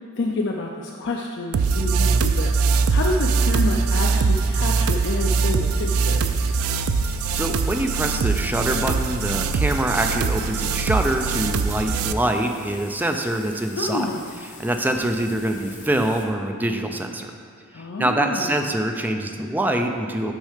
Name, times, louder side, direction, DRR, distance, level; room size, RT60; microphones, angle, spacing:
voice 1, 0.2-6.2 13.8-14.3 17.7-18.5, left 2 dB, 55° left, 0 dB, 0.5 m, -28 dB
sound 1, 1.5-12.1, right 4 dB, 85° right, 0.3 m, -22 dB
sound 2, 5.7-16.2, left 4 dB, 35° left, 0.8 m, -45 dB
voice 2, 7.3-14.1 14.4-17.3 17.8-20.3, right 1 dB, 10° right, 4 dB, 0.4 m, -24 dB
6.2 x 5.5 x 5.0 m, 2.4 s
head